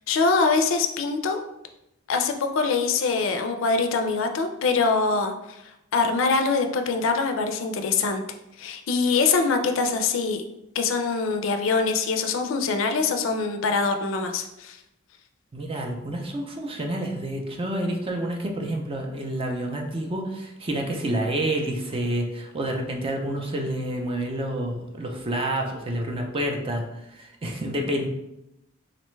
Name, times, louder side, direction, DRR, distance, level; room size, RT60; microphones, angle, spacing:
voice 1, 0.1-1.4 2.1-5.3 5.9-8.2 8.6-10.4 10.8-14.8, left 4 dB, 70° left, 6 dB, 0.4 m, -23 dB
voice 2, 15.5-26.8 27.2-28.1, right 1 dB, 25° right, 2 dB, 0.4 m, -28 dB
3.9 x 2.2 x 3.1 m, 0.86 s
head